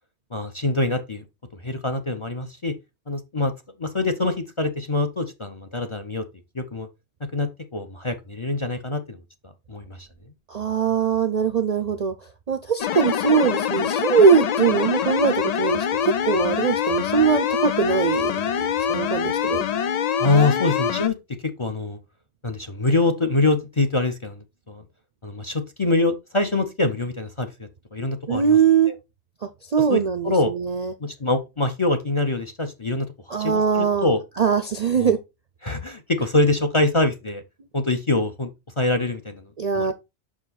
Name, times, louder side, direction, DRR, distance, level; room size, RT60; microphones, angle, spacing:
voice 1, 0.3-1.2 1.6-2.7 3.1-3.5 3.8-6.2 6.5-6.9 7.3-9.2 9.7-10.1 20.2-21.2 21.6-22.0 22.4-24.8 25.2-28.6 29.9-30.5 31.0-34.2 35.0-35.2 35.6-37.4 37.7-38.5 38.8-39.4 39.7-39.9, left 2 dB, 35° left, 0.6 m, -24 dB
voice 2, 10.5-12.2 12.5-18.3 18.6-19.6 28.3-28.9 29.4-30.9 33.3-34.1 34.4-35.2 39.6-39.9, right 6 dB, 50° right, 0.5 m, -21 dB
sound 1, 12.8-21.1, left 8 dB, 90° left, 0.3 m, -24 dB
6.1 x 4.9 x 4.0 m
omnidirectional pair, 1.2 m